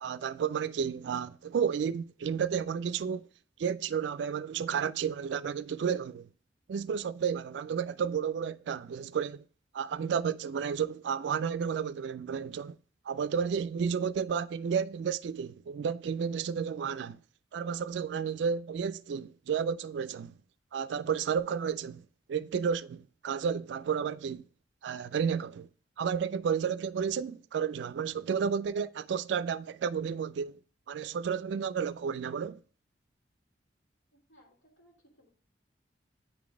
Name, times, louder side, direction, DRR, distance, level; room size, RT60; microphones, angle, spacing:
voice 1, 0.0-3.3 3.6-6.3 6.7-9.4 9.7-12.8 13.1-17.2 17.5-20.3 20.7-22.0 22.3-24.4 24.8-25.7 26.0-30.6 30.9-32.6, right 7 dB, 70° right, 0.3 m, -32 dB
voice 2, 34.1-35.3, equal, 85° left, 3.0 m, -63 dB
9.0 x 3.9 x 4.8 m
head